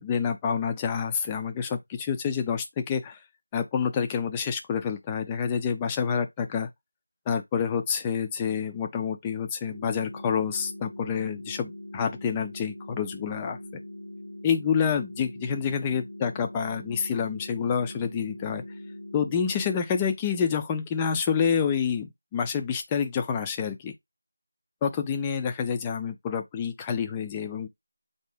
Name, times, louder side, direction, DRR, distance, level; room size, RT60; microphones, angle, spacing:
voice 1, 0.0-3.2 3.5-6.7 7.3-13.6 14.4-18.6 19.1-23.9 24.8-27.7, left 7 dB, 10° left, 0.4 m, -28 dB
sound 1, 9.7-19.7, left 1 dB, 80° left, 1.1 m, -42 dB
3.9 x 2.7 x 3.3 m
figure-of-eight pair, 175°, 0 cm